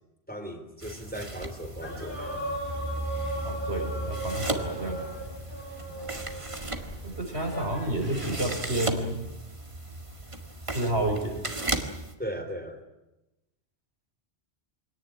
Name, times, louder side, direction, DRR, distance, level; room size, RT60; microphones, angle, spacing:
voice 1, 0.3-2.4 12.2-12.8, equal, 10° left, 6 dB, 3.4 m, -37 dB
sound 1, 0.8-12.1, right 2 dB, 30° right, 2.0 m, -37 dB
sound 2, 1.8-8.5, right 1 dB, 50° left, 5.7 m, -37 dB
sound 3, 2.6-5.8, equal, 5° right, 1.7 m, -37 dB
voice 2, 3.4-5.0 7.0-9.2 10.7-11.4, right 1 dB, 80° right, 4 dB, 5.4 m, -30 dB
24.0 x 18.0 x 10.0 m, 0.96 s
omnidirectional pair, 1.1 m